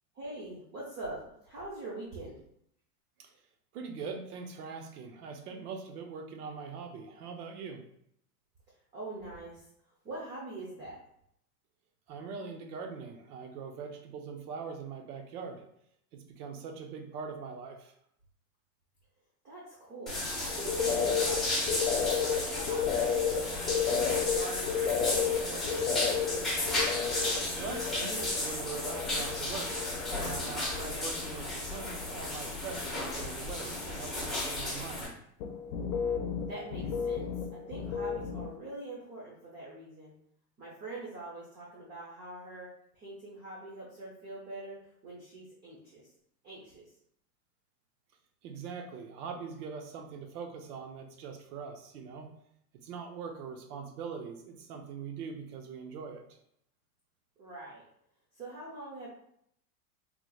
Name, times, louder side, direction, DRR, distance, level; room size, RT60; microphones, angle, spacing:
voice 1, 0.1-2.4 8.9-9.7 10.0-11.0 19.4-23.5 23.9-26.5 36.5-40.1 40.6-42.7 42.9-46.1 46.4-46.9 57.4-57.8 58.3-59.1, right 2 dB, 20° right, -5 dB, 0.6 m, -44 dB
voice 2, 3.7-7.8 12.1-15.6 16.1-17.9 27.6-29.8 30.2-35.1 48.4-52.3 52.8-56.2, right 5 dB, 70° right, 4 dB, 0.8 m, -42 dB
sound 1, 20.1-35.1, left 1 dB, ahead, 0.9 m, -34 dB
sound 2, 20.5-29.4 29.7-30.4 30.7-31.4 31.7-32.1 35.4-38.6, left 7 dB, 65° left, 0.7 m, -33 dB
3.9 x 2.9 x 2.3 m, 0.72 s
supercardioid pair, 145°, 47 cm